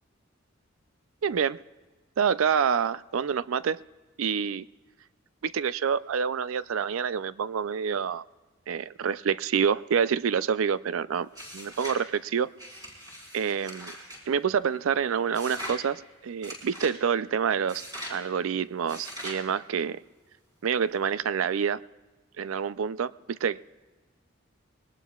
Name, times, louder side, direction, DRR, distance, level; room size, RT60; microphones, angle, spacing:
voice 1, 1.2-1.6 2.2-3.8 4.2-4.7 5.4-8.2 8.7-12.5 13.3-13.9 14.3-17.8 18.1-20.0 20.6-21.8 22.4-23.6, right 7 dB, 85° right, 17 dB, 0.4 m, -27 dB
sound 1, 11.3-12.0 12.6-14.2 15.3-15.8 16.4-16.9 17.7-18.2 18.9-19.4, equal, 20° right, 4.7 m, -40 dB
21.5 x 19.0 x 2.4 m, 1.3 s
head